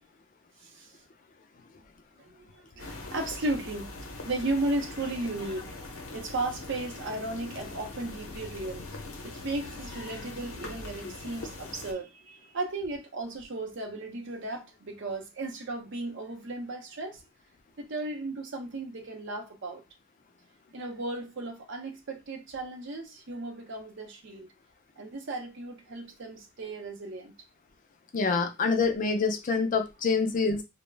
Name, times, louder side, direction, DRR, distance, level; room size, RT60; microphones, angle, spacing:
voice 1, 0.6-0.9 2.2-3.9 4.2-5.7 6.1-8.9 9.2-17.2 17.8-19.8 20.7-24.5 25.0-27.4, right 2 dB, 60° right, 0.6 m, -35 dB
sound 1, 2.8-11.9, left 2 dB, 75° left, 0.7 m, -42 dB
voice 2, 28.1-30.6, left 4 dB, 40° left, 0.4 m, -26 dB
2.2 x 2.0 x 3.2 m
head